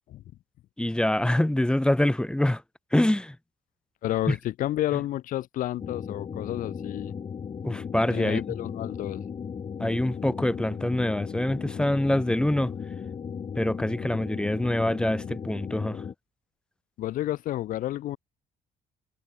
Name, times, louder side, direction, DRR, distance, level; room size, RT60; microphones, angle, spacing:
voice 1, 0.8-2.6 2.9-3.4 4.3-4.4 7.6-8.4 9.8-12.7 13.6-16.0, left 1 dB, 5° left, 0.9 m, -25 dB
voice 2, 4.0-7.1 8.1-9.2 17.0-18.2, left 14 dB, 55° left, 0.4 m, -30 dB
sound 1, 5.8-16.1, left 7 dB, 30° left, 0.9 m, -36 dB
cardioid pair, 110°, 17 cm